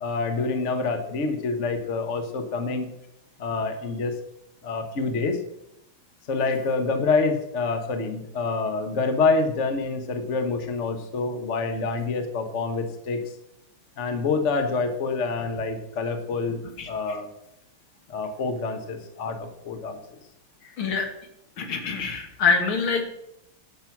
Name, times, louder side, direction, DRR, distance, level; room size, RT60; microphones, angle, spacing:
voice 1, 0.0-2.9 3.4-4.2 4.6-5.4 6.3-13.2 14.0-16.6 16.9-17.3 18.1-20.0, left 4 dB, 40° left, 7 dB, 1.2 m, -26 dB
voice 2, 20.8-21.1 21.6-23.0, left 5 dB, 70° left, 4 dB, 2.6 m, -24 dB
12.0 x 7.5 x 5.9 m, 0.81 s
omnidirectional pair, 2.4 m